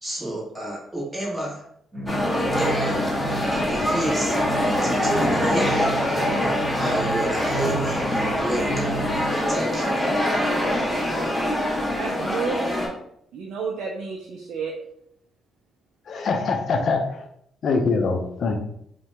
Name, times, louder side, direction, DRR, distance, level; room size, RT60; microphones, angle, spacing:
voice 1, 0.0-1.6 2.6-3.0 3.5-4.3 4.8-5.7 6.8-8.0 8.3-9.0 9.5-9.9, right 1 dB, 10° right, -4 dB, 1.2 m, -30 dB
sound 1, 1.9-9.2, right 1 dB, 35° right, 1.2 m, -32 dB
sound 2, 2.1-12.9, left 1 dB, 5° left, 0.9 m, -24 dB
voice 2, 10.6-11.6 11.9-12.7 13.3-14.7, right 5 dB, 80° right, 0 dB, 0.4 m, -32 dB
voice 3, 16.1-17.3 17.6-18.6, left 4 dB, 55° left, 5 dB, 0.5 m, -23 dB
2.8 x 2.1 x 3.2 m, 0.71 s
cardioid pair, 90°, 0 cm